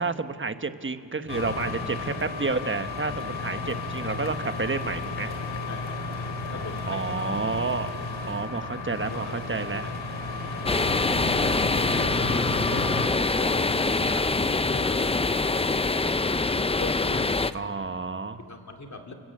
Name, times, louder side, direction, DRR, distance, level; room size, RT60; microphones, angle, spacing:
voice 1, 0.0-5.3 6.9-8.0 8.3-9.9 14.0-14.1 17.5-18.4, right 4 dB, 25° right, 9 dB, 1.1 m, -30 dB
sound 1, 1.3-13.1, left 3 dB, 75° left, 3.3 m, -33 dB
voice 2, 5.7-6.1 6.5-7.3 8.3-8.4 9.1-9.4 10.7-13.1 13.4-15.4 16.8-17.7 18.4-19.1, left 2 dB, 40° left, 3 dB, 3.0 m, -40 dB
sound 2, 10.7-17.5, left 3 dB, 15° left, 0.5 m, -24 dB
29.5 x 15.0 x 8.7 m, 2.8 s
wide cardioid pair, 105°, 45 cm